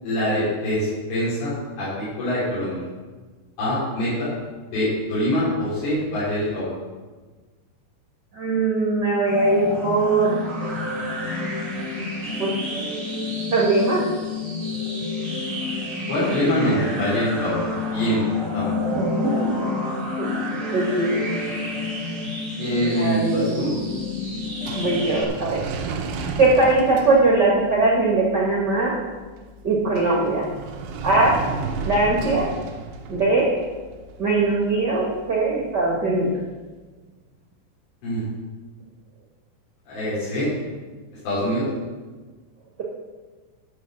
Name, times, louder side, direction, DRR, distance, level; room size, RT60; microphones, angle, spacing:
voice 1, 0.0-2.8 3.6-4.3 4.7-6.6 16.1-17.5 17.9-18.8 22.6-23.7 38.0-38.2 39.9-40.5 41.2-41.7, equal, 80° left, -12 dB, 6.3 m, -24 dB
voice 2, 8.3-10.4 12.4-12.5 13.5-14.1 18.6-19.7 20.2-20.4 20.7-21.2 22.9-23.8 24.7-25.6 26.4-28.9 29.6-30.5 31.0-31.3 31.8-32.5 33.1-33.5 34.2-36.3, right 2 dB, 90° right, -3 dB, 0.9 m, -21 dB
sound 1, 9.3-25.2, left 3 dB, 35° right, 1.2 m, -28 dB
sound 2, 23.5-36.6, right 4 dB, 75° right, 2.7 m, -35 dB
12.5 x 6.5 x 6.3 m, 1.3 s
omnidirectional pair, 4.9 m